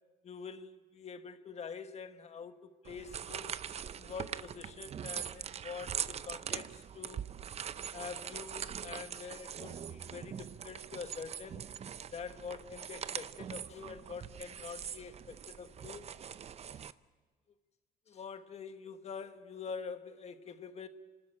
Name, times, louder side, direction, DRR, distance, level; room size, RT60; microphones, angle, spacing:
voice 1, 0.2-3.5 3.9-7.3 7.9-11.6 12.1-16.1 18.1-20.9, left 6 dB, 40° left, 1.4 m, -45 dB
sound 1, 2.8-16.9, right 8 dB, 40° right, 0.6 m, -42 dB
27.5 x 13.0 x 8.9 m
cardioid pair, 110°, 17 cm